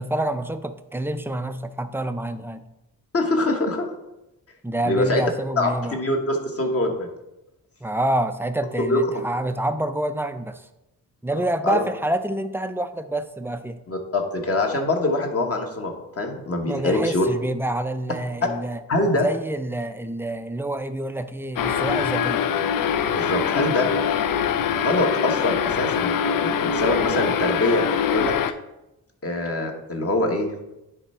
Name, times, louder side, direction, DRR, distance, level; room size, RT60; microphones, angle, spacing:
voice 1, 0.0-2.6 4.6-6.0 7.8-10.7 11.2-13.8 16.7-18.8 19.1-22.5, right 1 dB, 5° right, 9 dB, 0.4 m, -27 dB
voice 2, 3.1-3.9 4.8-5.2 5.6-7.1 8.9-9.0 11.3-11.8 13.9-17.3 18.4-18.5 18.9-19.3 23.1-23.9 24.7-27.8 28.1-28.3 29.2-30.5, left 2 dB, 40° left, 2 dB, 1.2 m, -24 dB
sound 1, 21.6-28.5, left 7 dB, 65° left, 0.5 m, -23 dB
9.9 x 3.4 x 4.3 m, 0.93 s
cardioid pair, 100°, 36 cm